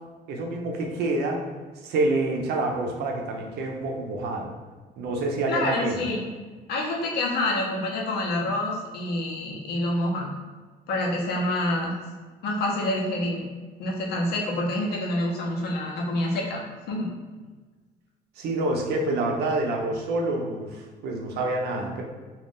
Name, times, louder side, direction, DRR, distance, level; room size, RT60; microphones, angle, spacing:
voice 1, 0.3-1.4 1.8-4.5 5.0-6.0 18.4-22.0, right 2 dB, 75° right, 1 dB, 0.6 m, -27 dB
voice 2, 5.5-6.3 6.7-10.3 10.9-11.9 12.4-13.4 13.8-17.1, left 1 dB, 70° left, -1 dB, 0.8 m, -27 dB
2.5 x 2.4 x 3.5 m, 1.4 s
cardioid pair, 110°, 17 cm